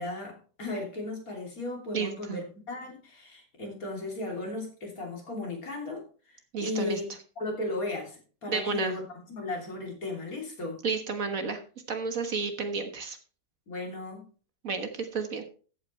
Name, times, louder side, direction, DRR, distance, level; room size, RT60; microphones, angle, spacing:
voice 1, 0.0-7.1 7.4-10.8 13.7-14.2, left 2 dB, 60° left, 1 dB, 3.5 m, -36 dB
voice 2, 1.9-2.4 6.5-7.0 8.5-9.0 10.8-11.6 11.9-13.2 14.6-15.5, right 4 dB, 55° right, 6 dB, 1.7 m, -31 dB
14.0 x 8.5 x 3.1 m, 0.38 s
omnidirectional pair, 1.7 m